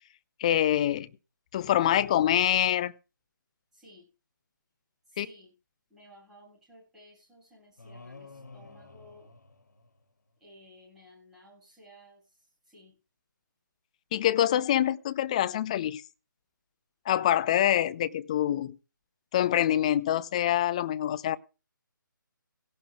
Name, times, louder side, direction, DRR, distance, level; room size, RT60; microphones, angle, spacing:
voice 1, 0.4-1.1 1.5-2.9 5.2-5.3 14.1-16.0 17.1-18.8 19.3-21.4, left 11 dB, 20° left, 15 dB, 0.6 m, -25 dB
voice 2, 3.7-4.1 5.1-5.5 5.9-9.3 10.4-13.0, equal, 5° right, -5 dB, 7.2 m, -56 dB
sound 1, 7.8-10.3, left 3 dB, 55° left, 2.7 m, -50 dB
17.5 x 17.5 x 2.2 m, 0.31 s
figure-of-eight pair, 145°, 11 cm